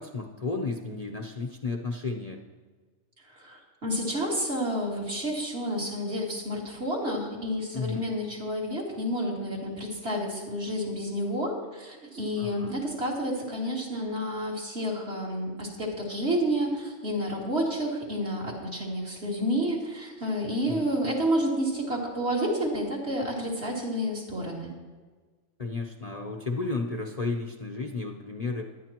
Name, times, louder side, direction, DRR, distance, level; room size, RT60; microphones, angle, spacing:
voice 1, 0.0-2.4 7.7-8.1 12.4-12.7 20.6-20.9 25.6-28.7, left 3 dB, 35° left, 2 dB, 0.8 m, -33 dB
voice 2, 3.4-24.7, equal, 55° right, -3 dB, 2.7 m, -30 dB
18.0 x 11.5 x 3.0 m, 1.4 s
omnidirectional pair, 1.3 m